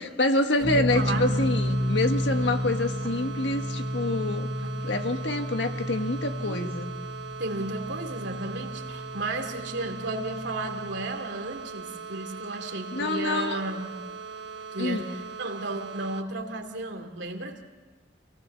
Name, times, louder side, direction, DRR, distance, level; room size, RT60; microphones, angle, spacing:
voice 1, 0.0-4.5 4.8-6.9 12.9-13.6 14.8-15.0, left 2 dB, 80° left, 6 dB, 1.6 m, -27 dB
sound 1, 0.6-11.1, equal, ahead, 2.8 m, -32 dB
voice 2, 0.6-1.4 4.6-5.0 6.4-6.7 7.4-13.9 14.7-17.6, right 2 dB, 85° right, 4 dB, 2.5 m, -34 dB
sound 2, 0.9-16.2, right 5 dB, 70° right, 1.1 m, -40 dB
27.5 x 18.0 x 7.1 m, 1.3 s
head